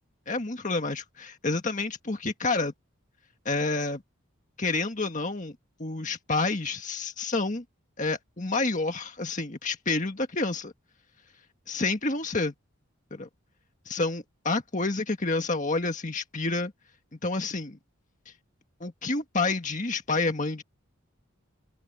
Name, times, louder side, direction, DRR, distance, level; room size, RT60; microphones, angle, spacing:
voice 1, 0.3-2.7 3.5-4.0 4.6-5.5 5.8-7.6 8.0-10.7 11.7-12.5 13.1-13.3 13.9-16.7 17.2-17.8 18.8-20.6, left 3 dB, 35° left, 1.7 m, -29 dB
open air
head